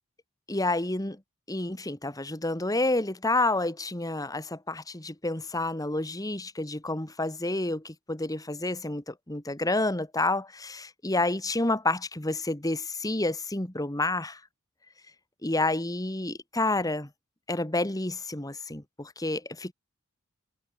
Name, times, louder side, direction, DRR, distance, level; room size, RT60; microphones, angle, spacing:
voice 1, 0.5-1.2 1.5-14.4 15.4-17.1 17.5-19.7, left 2 dB, 15° left, 1.8 m, -29 dB
head